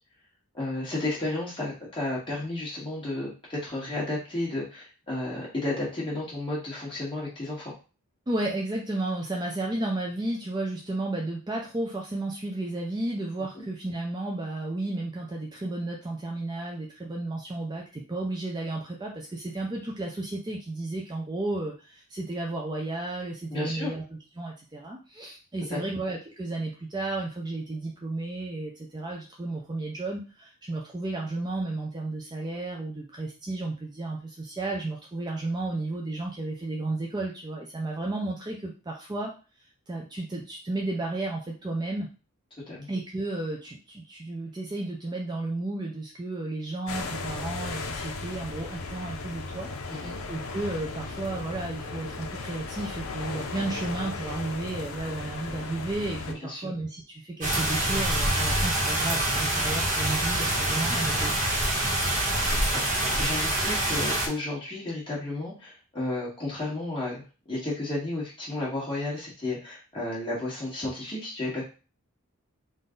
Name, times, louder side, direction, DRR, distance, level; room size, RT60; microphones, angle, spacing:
voice 1, 0.5-7.7 13.5-13.6 23.5-23.9 25.7-25.9 42.7-42.9 49.9-50.2 56.4-56.7 63.2-71.6, left 2 dB, 25° left, -6 dB, 1.8 m, -32 dB
voice 2, 8.3-24.0 24.4-39.3 39.9-42.1 42.9-49.7 50.3-61.5, right 2 dB, 20° right, -1 dB, 0.5 m, -33 dB
sound 1, 46.9-56.3, left 3 dB, 70° left, 0.7 m, -36 dB
sound 2, 57.4-64.3, right 1 dB, 35° right, 1.3 m, -26 dB
3.8 x 2.6 x 3.8 m, 0.34 s
head